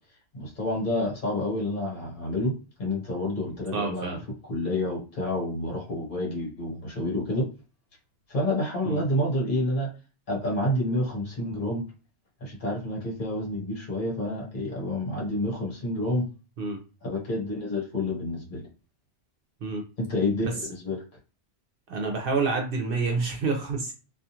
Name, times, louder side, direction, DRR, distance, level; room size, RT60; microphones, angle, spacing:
voice 1, 0.3-2.5 2.8-4.2 4.5-7.5 8.3-9.9 10.3-11.8 12.4-16.3 17.0-18.7 20.0-21.0, left 1 dB, 50° left, -2 dB, 1.2 m, -29 dB
voice 2, 3.7-4.2 8.8-9.0 16.6-16.8 19.6-19.8 21.9-23.9, right 4 dB, 60° right, 2 dB, 0.7 m, -28 dB
2.4 x 2.3 x 2.8 m, 0.33 s
omnidirectional pair, 1.1 m